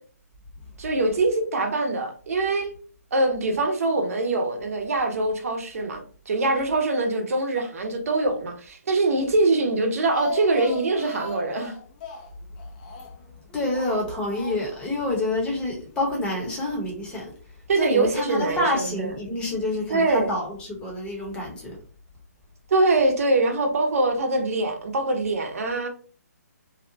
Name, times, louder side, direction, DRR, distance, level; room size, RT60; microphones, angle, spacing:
voice 1, 0.8-2.7 3.1-11.7 17.7-19.1 19.9-20.3 22.7-25.9, right 2 dB, 60° right, 0.7 m, -23 dB
Speech, 9.8-13.3 13.7-14.9 15.1-15.2 15.5-15.6, left 5 dB, 30° left, 0.4 m, -39 dB
voice 2, 13.5-17.3 17.8-21.8, left 1 dB, 10° left, 0.8 m, -27 dB
2.7 x 2.1 x 2.6 m
hypercardioid pair, 150°, 9 cm